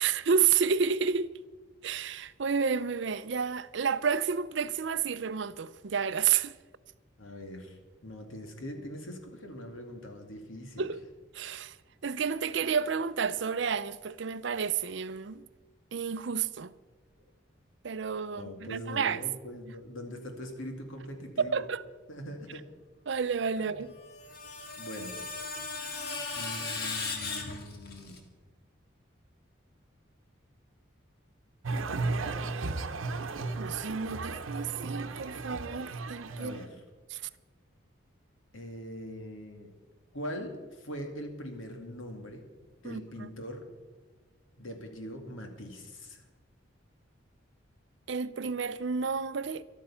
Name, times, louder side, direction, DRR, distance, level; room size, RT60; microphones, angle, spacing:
voice 1, 0.0-1.3 1.8-6.6 10.8-11.0 11.3-11.8 12.0-15.4 15.9-16.7 17.8-19.2 21.4-21.8 23.1-23.9 33.6-36.6 37.1-37.2 42.8-43.3 48.1-49.6, right 6 dB, 65° right, 0.5 m, -30 dB
voice 2, 7.2-10.9 17.2-17.3 18.3-21.7 22.1-22.6 23.6-23.8 24.8-25.2 26.4-28.2 36.4-36.8 38.5-39.7 40.1-42.4 42.8-43.7 44.6-46.3, equal, 85° left, 2.3 m, -42 dB
Screech, 23.9-28.2, left 4 dB, 50° left, 1.8 m, -37 dB
sound 1, 31.6-36.7, right 3 dB, 90° right, 0.9 m, -35 dB
13.0 x 12.0 x 5.7 m
head